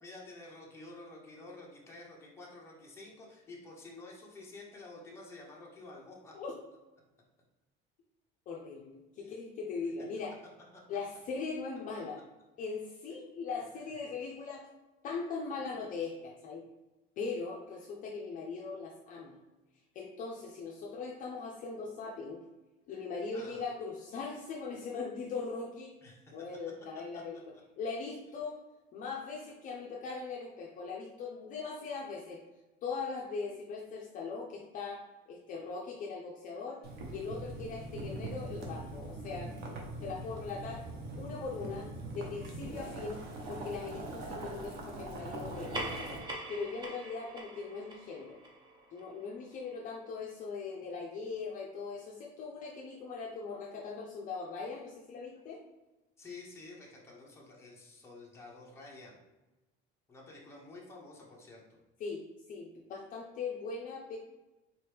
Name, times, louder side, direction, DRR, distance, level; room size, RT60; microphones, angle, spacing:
voice 1, 0.0-6.3 9.2-9.3 13.8-13.9 23.3-23.6 26.0-26.3 27.1-27.2 56.2-59.2 60.1-61.8, left 2 dB, 10° left, -3 dB, 0.8 m, -50 dB
voice 2, 8.5-10.4 10.9-12.2 12.6-14.7 15.0-16.7 17.2-19.4 19.9-22.4 22.9-25.9 26.3-28.6 28.9-32.4 32.8-36.8 37.1-39.8 40.0-40.8 41.2-43.2 43.5-46.2 46.5-48.4 48.9-55.6 62.0-62.2 62.5-64.2, left 4 dB, 40° left, -2 dB, 0.5 m, -40 dB
Boiling, 36.8-46.2, right 2 dB, 90° right, 1.0 m, -42 dB
sound 1, 45.5-50.4, right 1 dB, 20° right, 0.6 m, -44 dB
3.8 x 3.0 x 3.4 m, 1.1 s
cardioid pair, 160°, 21 cm